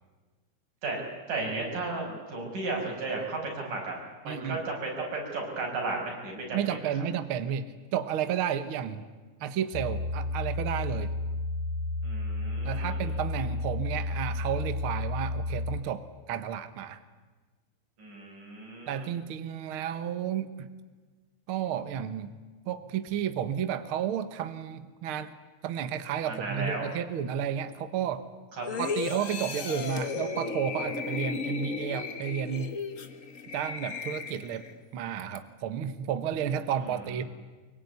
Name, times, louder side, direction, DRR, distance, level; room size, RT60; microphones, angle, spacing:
voice 1, 1.3-4.0 4.2-6.8 12.0-13.0 18.0-19.1 26.3-26.9 28.6-28.7, right 3 dB, 85° right, 0 dB, 7.7 m, -34 dB
voice 2, 4.2-4.6 6.5-9.0 9.4-11.1 12.6-17.0 18.9-20.7 21.5-22.3 22.7-25.3 25.6-28.2 28.8-32.8 33.5-34.6 34.9-37.2, right 9 dB, 55° right, 11 dB, 1.7 m, -32 dB
sound 1, 9.7-15.8, left 2 dB, 80° left, 3.5 m, -32 dB
sound 2, 28.6-34.8 35.2-35.4, left 5 dB, 50° left, 0.9 m, -35 dB
24.0 x 23.0 x 9.5 m, 1.3 s
omnidirectional pair, 3.6 m